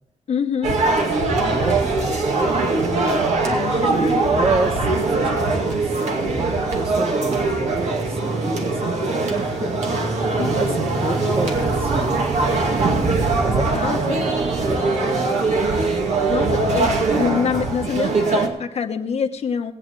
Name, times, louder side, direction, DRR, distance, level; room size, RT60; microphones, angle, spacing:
voice 1, 0.3-0.8 3.5-4.2 10.4-10.9 13.8-14.3 16.3-19.7, left 6 dB, 65° left, 5 dB, 1.2 m, -26 dB
sound 1, 0.6-18.5, right 3 dB, 80° right, 2.2 m, -21 dB
voice 2, 1.4-2.2 3.4-9.7 10.0-12.3 13.4-15.3, right 3 dB, 50° right, 5 dB, 1.6 m, -29 dB
19.0 x 8.8 x 4.7 m, 0.84 s
wide cardioid pair, 110°, 12 cm